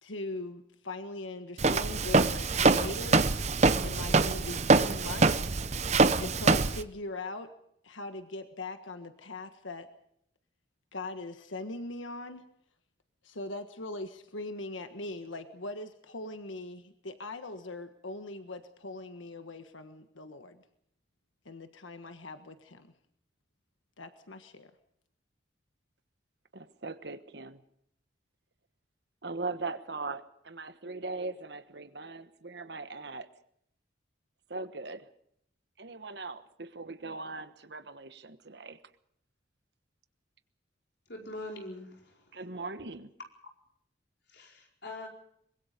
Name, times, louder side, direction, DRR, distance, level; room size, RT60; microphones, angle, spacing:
voice 1, 0.0-3.5 3.8-5.6 6.2-7.5 7.8-9.9 10.9-12.5 13.2-20.6 21.4-22.9 24.0-24.7, left 2 dB, 85° left, 8 dB, 1.5 m, -41 dB
Walk footsteps, 1.6-6.8, right 3 dB, 35° right, 0.8 m, -24 dB
voice 2, 26.5-27.6 29.2-33.3 34.5-35.1 35.8-38.8 42.3-43.1, right 3 dB, 60° right, 11 dB, 1.3 m, -40 dB
voice 3, 41.1-42.2 44.3-45.1, left 2 dB, 60° left, 1 dB, 4.8 m, -42 dB
23.5 x 22.0 x 5.2 m, 0.71 s
head